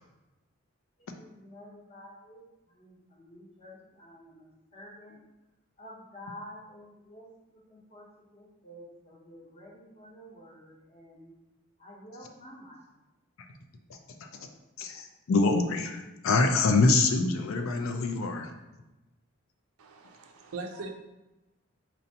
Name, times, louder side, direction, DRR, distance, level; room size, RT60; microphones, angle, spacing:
voice 1, 1.2-5.2 5.8-11.3 11.8-12.9, equal, 30° left, -4 dB, 0.8 m, -50 dB
voice 2, 13.9-14.3 14.8-18.5, left 3 dB, 75° left, 5 dB, 0.4 m, -25 dB
voice 3, 19.8-20.9, right 3 dB, 90° right, 4 dB, 0.5 m, -40 dB
4.3 x 2.6 x 2.7 m, 1.0 s
head